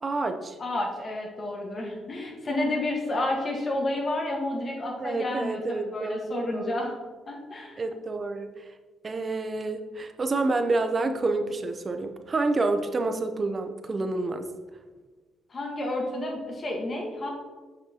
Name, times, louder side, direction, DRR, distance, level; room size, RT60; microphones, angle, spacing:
voice 1, 0.0-0.6 5.0-6.8 7.8-8.7 9.0-14.5, right 3 dB, 35° right, 7 dB, 0.7 m, -28 dB
voice 2, 0.6-6.9 7.3-7.8 15.5-17.3, left 1 dB, 40° left, 0 dB, 1.5 m, -30 dB
7.7 x 5.9 x 2.9 m, 1.4 s
cardioid pair, 90°, 0 cm